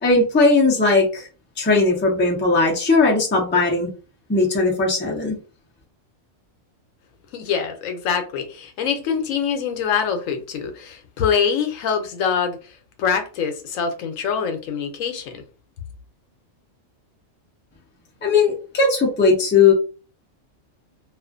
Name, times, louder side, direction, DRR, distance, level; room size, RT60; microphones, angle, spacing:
voice 1, 0.0-1.3 1.6-3.9 4.3-5.4 18.2-19.7, left 3 dB, 15° left, 0.5 m, -18 dB
voice 2, 7.3-12.7 13.0-15.4, left 7 dB, 85° left, 1.0 m, -24 dB
2.4 x 2.4 x 2.4 m
omnidirectional pair, 1.4 m